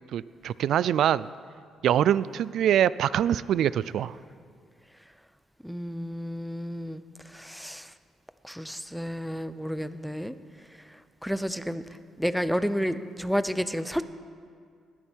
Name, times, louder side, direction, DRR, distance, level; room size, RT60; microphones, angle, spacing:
voice 1, 0.1-1.3 1.8-4.1, right 10 dB, 75° right, 19 dB, 0.3 m, -24 dB
voice 2, 5.6-7.0 7.3-7.9 8.4-10.3 11.2-11.8 12.2-14.0, equal, ahead, 12 dB, 0.6 m, -31 dB
19.5 x 11.0 x 4.6 m, 2.2 s
cardioid pair, 90°, 0 cm